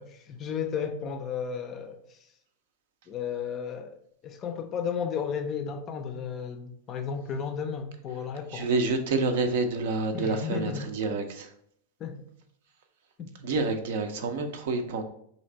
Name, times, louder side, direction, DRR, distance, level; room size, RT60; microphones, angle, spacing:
voice 1, 0.0-2.2 3.1-4.0 4.2-8.7 10.1-10.9 12.0-12.2 13.2-13.3, left 6 dB, 30° left, 7 dB, 0.4 m, -33 dB
voice 2, 8.5-11.5 13.4-15.0, right 3 dB, 55° right, 6 dB, 0.5 m, -28 dB
3.2 x 2.7 x 4.2 m, 0.69 s
figure-of-eight pair, 90°, 0 cm